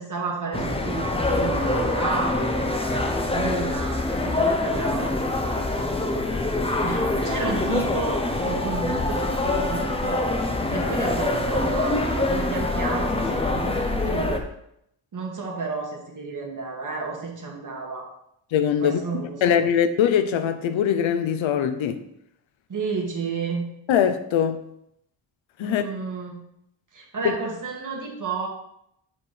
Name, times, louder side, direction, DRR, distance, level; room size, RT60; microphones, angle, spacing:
voice 1, 0.0-5.1 5.7-5.8 6.8-14.4 15.1-18.1 18.8-19.6 22.7-23.7 25.6-26.4 26.9-28.5, right 4 dB, 40° right, 1.8 m, -32 dB
sound 1, 0.5-14.4, left 2 dB, 15° left, 0.7 m, -25 dB
voice 2, 18.5-19.0 19.4-22.0 23.9-24.6 25.6-25.8, left 8 dB, 85° left, 0.8 m, -22 dB
7.0 x 4.4 x 5.0 m
cardioid pair, 110°, 45 cm